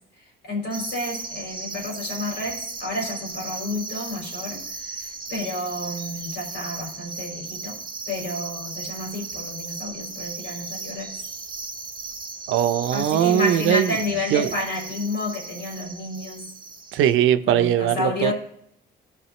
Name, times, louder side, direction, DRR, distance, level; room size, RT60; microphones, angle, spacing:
voice 1, 0.4-4.6 5.3-7.8 8.1-11.1 12.9-16.5 17.5-18.3, left 2 dB, 65° left, -1 dB, 3.9 m, -30 dB
sound 1, 0.7-17.1, right 4 dB, 25° right, 1.2 m, -36 dB
voice 2, 12.5-14.0 14.3-14.5 16.9-18.3, right 11 dB, 85° right, 11 dB, 0.6 m, -20 dB
15.5 x 5.5 x 3.2 m, 0.72 s
cardioid pair, 90°, 20 cm